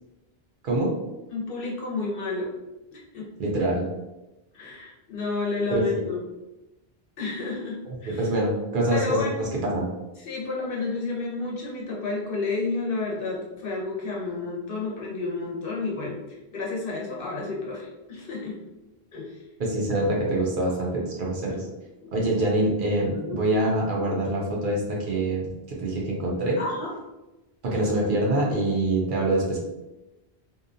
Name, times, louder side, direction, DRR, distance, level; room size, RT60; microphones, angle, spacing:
voice 1, 1.3-2.5 2.9-3.3 4.5-6.2 7.2-8.3 8.9-9.4 10.2-18.6 19.1-19.4 21.5-21.7 22.0-22.1 23.1-23.4 26.6-26.9, left 3 dB, 65° left, -3 dB, 0.9 m, -31 dB
voice 2, 3.4-3.9 5.7-5.8 8.1-9.9 19.6-21.7 22.1-26.6 27.6-29.6, right 1 dB, 60° right, -3 dB, 0.7 m, -25 dB
2.7 x 2.2 x 2.5 m, 1.0 s
omnidirectional pair, 1.0 m